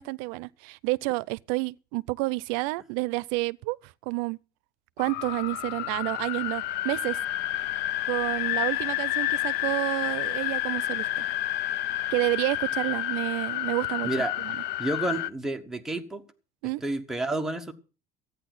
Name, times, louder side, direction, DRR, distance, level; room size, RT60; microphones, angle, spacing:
voice 1, 0.0-4.4 5.0-7.2 8.1-11.2 12.1-14.1 14.4-14.6 16.6-16.8, right 24 dB, 85° right, 0.6 m, -29 dB
sound 1, 5.0-15.3, left 15 dB, 55° left, 0.7 m, -30 dB
voice 2, 14.8-16.2 16.8-17.7, right 2 dB, ahead, 1.1 m, -30 dB
14.0 x 9.2 x 6.0 m
cardioid pair, 170°, 20 cm